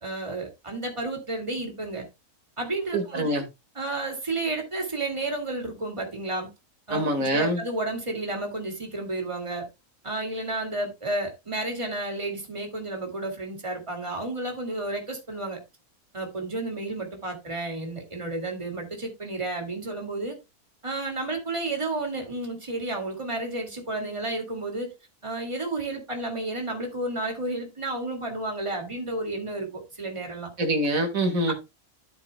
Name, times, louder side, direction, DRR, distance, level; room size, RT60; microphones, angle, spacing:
voice 1, 0.0-2.1 2.6-3.4 3.7-6.5 6.9-9.7 10.0-15.6 16.1-20.4 20.8-24.9 25.2-30.5, right 2 dB, 20° right, 2.3 m, -31 dB
voice 2, 2.9-3.4 6.9-7.6 30.6-31.5, right 1 dB, 65° right, 2.3 m, -25 dB
13.0 x 7.3 x 2.2 m
omnidirectional pair, 1.6 m